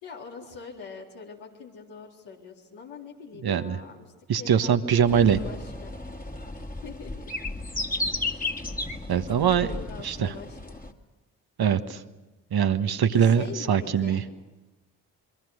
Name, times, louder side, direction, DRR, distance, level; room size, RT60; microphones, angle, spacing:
voice 1, 0.0-5.9 6.8-7.2 9.4-10.8 13.0-14.2, left 5 dB, 75° left, -2 dB, 3.9 m, -43 dB
voice 2, 3.4-3.8 4.3-5.4 9.1-9.7 10.0-10.3 11.6-12.0 12.5-14.2, right 8 dB, 55° right, 9 dB, 1.5 m, -22 dB
sound 1, 5.1-10.9, left 2 dB, 20° left, 2.3 m, -34 dB
27.5 x 23.0 x 6.5 m, 1.1 s
hypercardioid pair, 40°, 45 cm